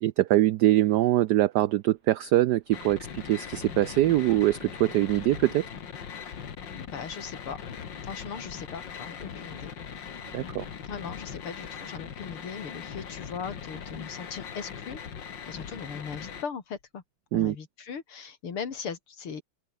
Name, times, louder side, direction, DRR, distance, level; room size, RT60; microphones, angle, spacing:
voice 1, 0.0-5.7 10.3-10.7 17.3-17.5, right 15 dB, 85° right, 0.9 m, -23 dB
sound 1, 2.7-16.4, left 7 dB, 60° left, 2.4 m, -40 dB
voice 2, 6.7-7.6 8.0-9.7 10.8-15.0 15.5-17.0 17.3-19.4, left 6 dB, 85° left, 3.4 m, -39 dB
open air
omnidirectional pair, 2.3 m